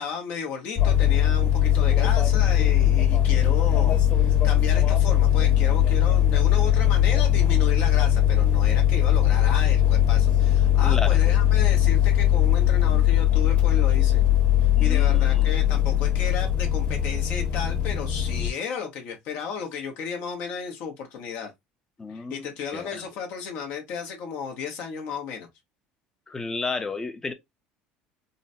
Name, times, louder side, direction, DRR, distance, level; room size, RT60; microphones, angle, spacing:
voice 1, 0.0-14.2 14.6-21.5 22.1-25.5, left 6 dB, 65° left, 1.0 m, -34 dB
sound 1, 0.8-18.5, left 11 dB, 45° left, 1.4 m, -20 dB
voice 2, 10.8-11.2 14.7-15.5 22.0-22.5 22.7-23.0 26.3-27.3, left 3 dB, 15° left, 0.6 m, -33 dB
3.9 x 2.1 x 2.6 m
cardioid pair, 125°, 3 cm